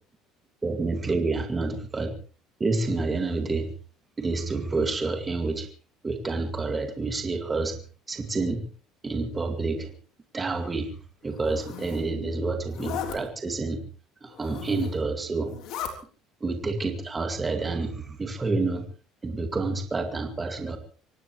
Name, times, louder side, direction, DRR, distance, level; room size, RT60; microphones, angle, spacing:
voice 1, 0.6-2.1 2.6-3.7 4.2-5.7 6.0-7.8 8.1-8.7 9.0-9.9 10.3-11.0 11.2-13.8 14.2-15.6 16.4-18.9 19.2-20.8, right 3 dB, 15° right, 5 dB, 2.2 m, -28 dB
Zipper (clothing), 11.3-12.0 12.7-13.2 14.3-15.0 15.4-15.9, left 9 dB, 60° left, 3.6 m, -37 dB
25.0 x 18.0 x 3.2 m, 0.39 s
cardioid pair, 165°, 0 cm